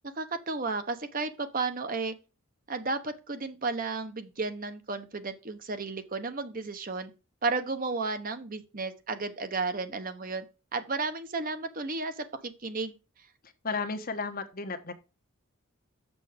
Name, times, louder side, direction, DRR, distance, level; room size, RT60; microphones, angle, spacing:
voice 1, 0.1-2.1 2.7-7.1 7.4-10.4 10.7-12.9, right 3 dB, 40° right, 1.0 m, -33 dB
voice 2, 13.4-14.9, left 4 dB, 45° left, 1.1 m, -34 dB
7.4 x 6.3 x 5.1 m
head